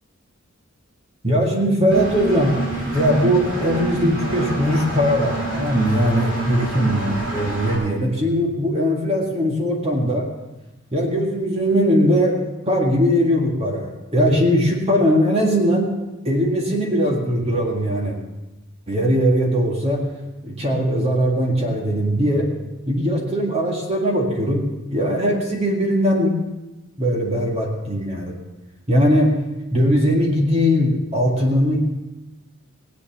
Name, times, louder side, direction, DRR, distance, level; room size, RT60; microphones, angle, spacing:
voice 1, 1.2-2.6 2.9-10.3 10.9-12.4 12.7-15.9 16.2-18.2 18.9-20.1 20.4-22.5 22.9-26.4 27.0-28.4 28.9-29.3 29.7-31.8, equal, 30° right, 0 dB, 1.9 m, -20 dB
Engine, 1.9-7.8, right 3 dB, 70° right, 6.6 m, -28 dB
18.0 x 8.3 x 7.3 m, 1.0 s
head